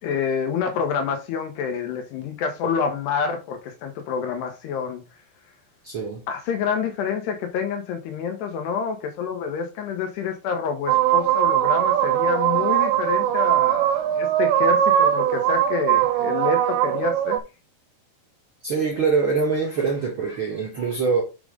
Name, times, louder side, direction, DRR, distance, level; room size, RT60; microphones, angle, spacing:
voice 1, 0.0-5.0 6.3-17.4, left 6 dB, 85° left, 3.5 m, -27 dB
voice 2, 5.8-6.2 18.6-21.2, right 5 dB, 55° right, 1.5 m, -24 dB
sound 1, 10.9-17.4, right 11 dB, 85° right, 2.6 m, -20 dB
7.9 x 3.7 x 5.1 m
omnidirectional pair, 4.6 m